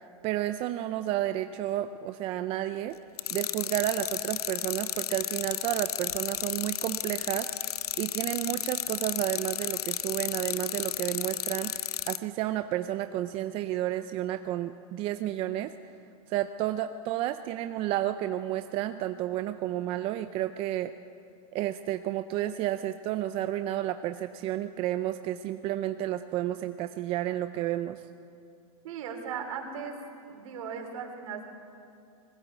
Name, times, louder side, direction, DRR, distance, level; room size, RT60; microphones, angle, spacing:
voice 1, 0.2-3.0 3.3-7.5 8.0-15.9 16.3-20.9 21.5-28.0, right 13 dB, 30° right, 10 dB, 0.5 m, -31 dB
sound 1, 3.2-12.2, left 11 dB, 90° left, 0.8 m, -33 dB
voice 2, 28.8-30.0 30.3-31.4, right 6 dB, 65° right, 4 dB, 3.8 m, -37 dB
20.5 x 17.0 x 8.2 m, 2.5 s
supercardioid pair, 145°, 19 cm